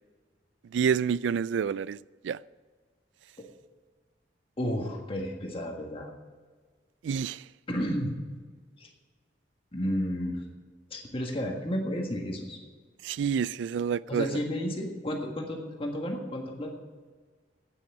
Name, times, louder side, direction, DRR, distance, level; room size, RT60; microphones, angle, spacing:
voice 1, 0.7-2.0 2.2-2.4 7.0-7.4 13.0-14.4, right 7 dB, 90° right, 0.3 m, -28 dB
voice 2, 4.6-6.1 7.7-8.2 8.8-8.9 9.7-10.4 10.9-12.6 14.1-16.7, equal, 30° left, 1.6 m, -32 dB
9.3 x 8.4 x 8.6 m
head